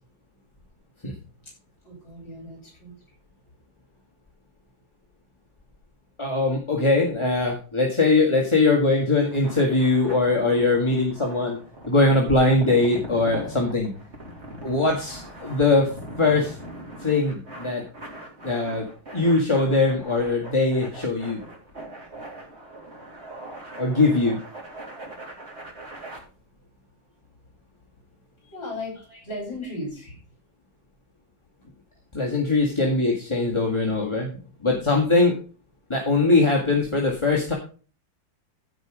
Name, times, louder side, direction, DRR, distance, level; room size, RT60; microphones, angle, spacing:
voice 1, 1.8-3.0 28.4-30.2, left 1 dB, 65° left, -1 dB, 5.3 m, -36 dB
voice 2, 6.2-11.6 11.9-13.9 14.6-15.9 16.2-16.6 17.0-17.8 18.4-18.8 19.1-21.4 23.8-24.4 30.0-30.1 32.1-35.4 35.9-37.5, left 3 dB, 15° left, -1 dB, 1.8 m, -21 dB
sound 1, 9.2-26.2, right 1 dB, 30° right, 3.7 m, -40 dB
15.0 x 5.4 x 5.1 m, 0.37 s
omnidirectional pair, 2.2 m